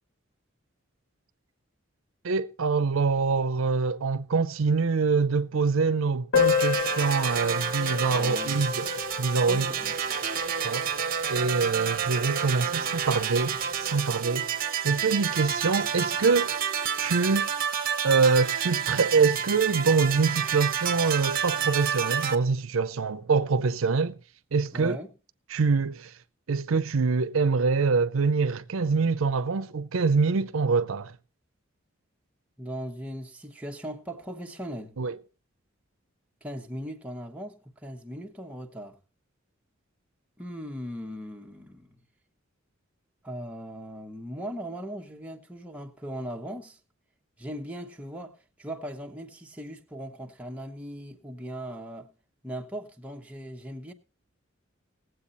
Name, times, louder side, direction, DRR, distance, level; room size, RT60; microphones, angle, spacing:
voice 1, 2.2-8.9 9.2-9.7 10.6-14.5 14.8-16.6 17.0-17.5 18.0-24.2 24.5-25.0 25.5-26.1 26.5-31.1 35.0-35.1, right 4 dB, 80° right, 0.6 m, -25 dB
Piano, 6.3-11.7 12.0-12.1 12.3-12.4 12.8-12.9 13.6-13.8, left 8 dB, 65° left, 1.3 m, -31 dB
sound 1, 6.4-22.4, right 8 dB, 45° right, 0.9 m, -29 dB
voice 2, 8.1-8.6 9.5-9.9 24.7-25.1 32.6-35.0 36.4-39.0 40.4-42.0 43.2-46.8 47.4-52.1 52.4-53.9, equal, 5° right, 1.0 m, -39 dB
18.5 x 7.9 x 4.1 m
head